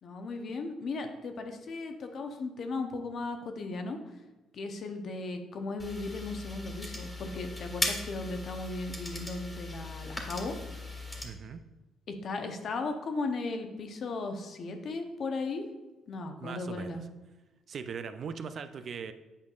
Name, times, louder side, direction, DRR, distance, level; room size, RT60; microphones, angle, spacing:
voice 1, 0.0-4.0 4.5-11.0 12.1-15.7 16.1-17.0, left 3 dB, 55° left, 5 dB, 0.8 m, -36 dB
sound 1, 5.8-11.3, left 1 dB, 15° left, 1.6 m, -38 dB
voice 2, 11.2-11.6 16.4-17.0 17.7-19.1, right 6 dB, 50° right, 10 dB, 0.4 m, -40 dB
8.3 x 5.3 x 2.4 m, 1.1 s
cardioid pair, 90°, 0 cm